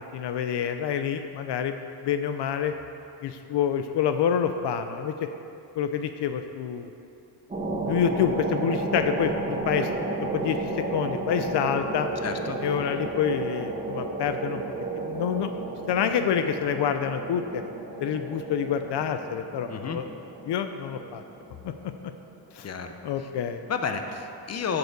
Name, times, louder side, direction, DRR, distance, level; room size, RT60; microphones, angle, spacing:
voice 1, 0.1-2.7 3.2-5.3 5.8-6.9 7.9-9.9 10.3-12.1 12.6-14.6 15.0-15.5 15.9-17.6 18.0-20.1 20.4-21.2 21.6-21.7 22.0-22.1 22.5-22.7 23.0-23.6, left 8 dB, 80° left, 8 dB, 0.6 m, -27 dB
sound 1, 7.5-22.6, right 2 dB, 20° right, 1.4 m, -33 dB
voice 2, 12.2-12.6 19.7-20.0 22.6-22.9 23.7-24.8, left 5 dB, 40° left, 6 dB, 0.8 m, -31 dB
8.2 x 6.9 x 6.8 m, 2.9 s
wide cardioid pair, 130°, 41 cm